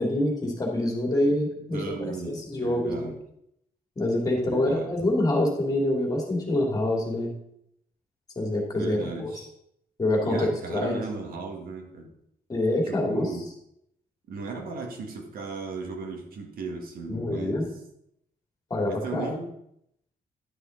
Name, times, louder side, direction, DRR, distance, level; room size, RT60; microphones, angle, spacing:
voice 1, 0.0-3.1 4.0-7.3 8.4-9.3 10.0-10.9 12.5-13.3 17.1-17.7 18.7-19.3, left 1 dB, 25° left, -1 dB, 2.5 m, -26 dB
voice 2, 1.7-3.2 4.4-5.0 8.8-9.5 10.2-12.1 12.7-13.5 14.3-17.7 18.9-19.5, right 3 dB, 85° right, 2 dB, 1.8 m, -36 dB
11.5 x 6.3 x 3.9 m, 0.75 s
wide cardioid pair, 155°, 15 cm